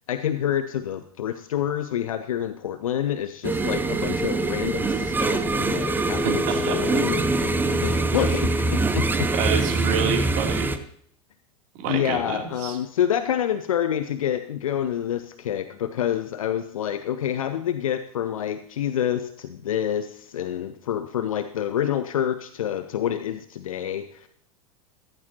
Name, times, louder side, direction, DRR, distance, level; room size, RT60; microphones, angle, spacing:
voice 1, 0.1-9.3 11.9-24.3, left 10 dB, 65° left, 10 dB, 0.8 m, -28 dB
sound 1, 3.4-10.8, right 2 dB, 10° right, 0.9 m, -24 dB
voice 2, 6.2-7.2 8.1-8.2 9.3-10.7 11.8-12.8, right 7 dB, 40° right, 2 dB, 3.0 m, -28 dB
15.0 x 14.5 x 2.9 m, 0.65 s
figure-of-eight pair, 85°, 19 cm